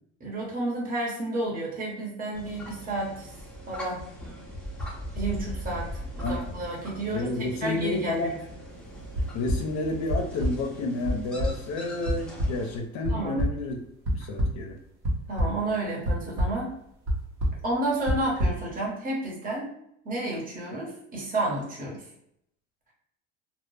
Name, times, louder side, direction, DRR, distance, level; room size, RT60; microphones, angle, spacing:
voice 1, 0.2-3.3 3.7-4.0 5.1-5.9 6.1-8.4 13.1-13.4 15.3-16.7 17.6-19.7 20.0-22.0, right 2 dB, 25° right, -4 dB, 1.0 m, -31 dB
sound 1, 2.3-12.8, equal, 5° left, 0.5 m, -40 dB
voice 2, 7.1-8.3 9.3-13.8 14.1-14.8, left 2 dB, 60° left, 3 dB, 0.5 m, -30 dB
sound 2, 9.1-9.6 10.1-10.5 11.0-11.1 11.4-11.5 12.1-12.2 12.4-12.5 13.0-13.5 14.0-14.5 15.0-15.6 16.0-16.5 17.1-17.2 17.4-17.6 18.1-18.5, equal, 60° right, 0.9 m, -24 dB
2.1 x 2.0 x 3.1 m, 0.74 s
supercardioid pair, 100°, 32 cm